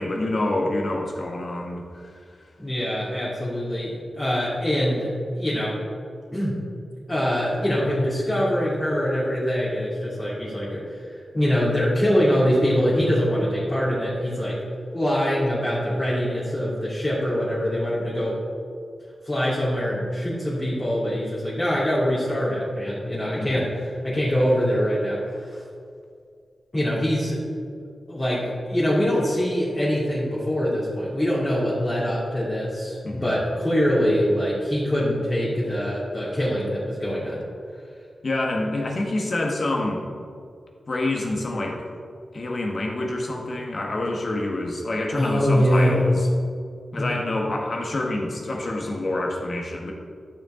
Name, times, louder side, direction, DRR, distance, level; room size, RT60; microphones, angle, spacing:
voice 1, 0.0-2.1 23.3-23.7 33.0-33.3 38.2-40.0 40.9-41.8 42.3-46.3 46.9-49.9, left 2 dB, 50° left, 0 dB, 1.5 m, -27 dB
voice 2, 2.6-5.1 5.4-5.8 6.3-6.6 7.1-14.6 14.9-18.4 19.2-25.6 26.7-27.4 28.1-37.4 45.1-46.0 47.0-47.1, equal, 20° left, -9 dB, 2.5 m, -24 dB
11.5 x 7.1 x 3.8 m, 2.3 s
wide cardioid pair, 95°, 0 cm